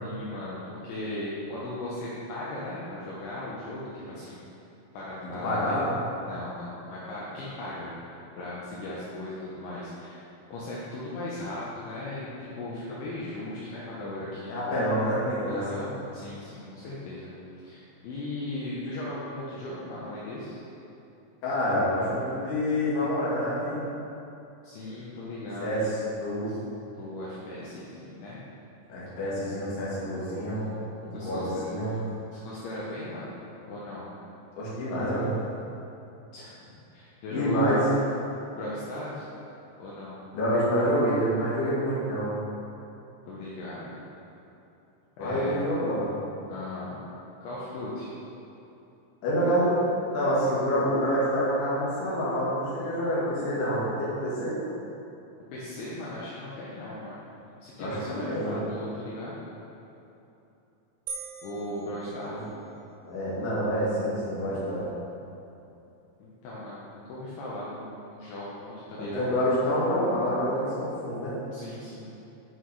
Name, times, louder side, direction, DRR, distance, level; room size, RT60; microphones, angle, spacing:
voice 1, 0.0-4.4 4.9-5.8 6.2-10.2 10.5-14.7 15.4-20.6 24.6-25.9 26.5-26.6 26.9-28.4 31.1-31.8 32.3-33.3 33.7-34.0 36.3-37.8 38.5-39.3 39.8-40.2 43.3-43.9 45.2-45.6 46.5-47.0 47.4-48.1 55.5-57.2 57.6-59.4 61.4-62.4 66.2-69.3 71.5-72.1, left 1 dB, 75° left, -8 dB, 3.2 m, -37 dB
voice 2, 5.2-5.9 14.5-15.9 21.4-23.9 25.6-26.5 28.9-30.8 31.0-32.0 34.6-35.3 37.3-37.8 40.3-42.4 45.2-46.1 49.2-54.6 57.8-58.5 62.3-62.4 63.0-64.8 69.0-71.3, equal, 50° left, -8 dB, 3.0 m, -27 dB
sound 1, 61.1-62.9, right 5 dB, 85° right, 3.4 m, -42 dB
8.1 x 6.1 x 4.8 m, 2.9 s
omnidirectional pair, 6.0 m